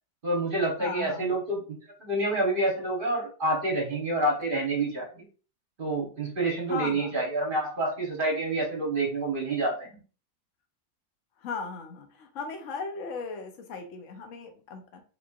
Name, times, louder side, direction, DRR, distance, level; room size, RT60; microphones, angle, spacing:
voice 1, 0.2-5.2 5.8-10.0, right 2 dB, 40° right, -1 dB, 1.1 m, -28 dB
voice 2, 0.8-1.4 6.7-7.2 11.4-15.0, left 5 dB, 60° left, 5 dB, 1.0 m, -37 dB
3.7 x 3.1 x 2.4 m, 0.37 s
omnidirectional pair, 1.6 m